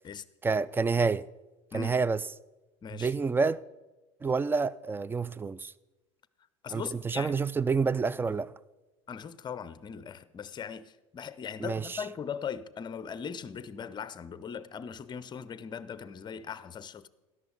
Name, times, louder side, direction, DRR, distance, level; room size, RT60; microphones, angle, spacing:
voice 1, 0.4-1.2 1.7-2.2 2.9-3.6 4.2-5.7 6.7-8.5 11.6-12.0, right 4 dB, 15° right, 0.3 m, -28 dB
voice 2, 2.8-3.1 6.6-7.4 9.1-17.1, left 7 dB, 25° left, 0.7 m, -39 dB
13.5 x 11.0 x 4.0 m
hypercardioid pair, 80°, 16 cm